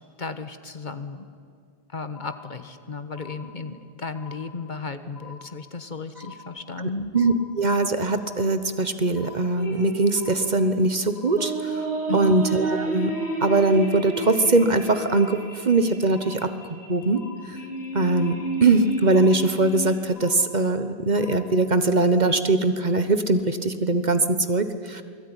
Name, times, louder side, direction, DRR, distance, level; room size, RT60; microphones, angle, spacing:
voice 1, 0.2-1.2 1.9-7.1 12.1-12.4, left 3 dB, 45° left, 9 dB, 1.4 m, -34 dB
sound 1, 2.1-2.8 3.1-3.8 4.1-4.8 5.1-5.8 6.1-6.8 7.1-7.8 8.1-8.8 9.1-9.8 10.1-10.8 11.1-11.8 12.1-12.8 13.1-13.8 14.1-14.8 15.1-15.8 16.1-16.8 17.1-17.8 18.1-18.8 19.1-19.8 20.1-20.8 21.1-21.8, left 6 dB, 75° right, 7.3 m, -46 dB
voice 2, 7.1-11.8 12.1-13.1 13.4-17.2 17.5-17.6 17.9-25.0, right 2 dB, 45° right, 10 dB, 1.3 m, -21 dB
sound 2, 9.6-20.0, right 3 dB, 85° left, 5.6 m, -31 dB
27.5 x 20.5 x 10.0 m, 2.2 s
omnidirectional pair, 1.1 m